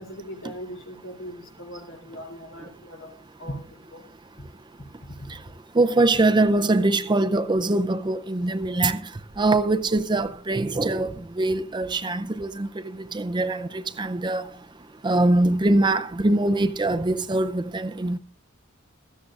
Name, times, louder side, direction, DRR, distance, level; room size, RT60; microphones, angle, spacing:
voice 1, 0.0-3.1 3.4-4.0, equal, 85° left, 2.8 m, -39 dB
voice 2, 5.8-9.0 9.4-11.1 11.4-12.7 13.1-14.4 15.0-18.2, right 2 dB, 20° right, 0.5 m, -22 dB
16.5 x 13.5 x 2.5 m
head